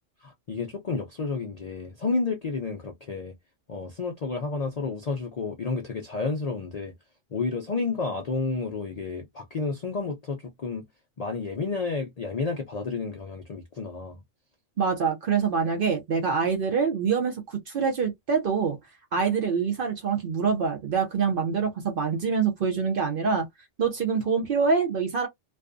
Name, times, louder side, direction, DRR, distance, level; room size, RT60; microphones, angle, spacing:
voice 1, 0.2-3.3 3.7-6.9 7.3-10.9 11.2-14.2, left 4 dB, 80° left, 0.3 m, -31 dB
voice 2, 14.8-18.8 19.1-23.5 23.8-25.3, right 5 dB, 55° right, 0.6 m, -25 dB
2.5 x 2.3 x 2.4 m
omnidirectional pair, 1.4 m